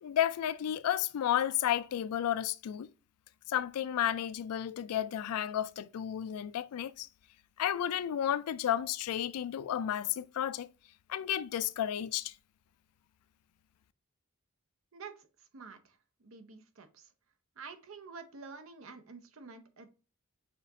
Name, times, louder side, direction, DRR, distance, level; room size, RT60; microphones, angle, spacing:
voice 1, 0.0-2.9 3.5-7.1 7.6-10.7 11.1-12.3, left 10 dB, 90° left, 0.3 m, -32 dB
voice 2, 14.9-15.3 15.5-17.1 17.6-19.9, right 4 dB, 65° right, 0.6 m, -49 dB
6.7 x 2.5 x 2.6 m
head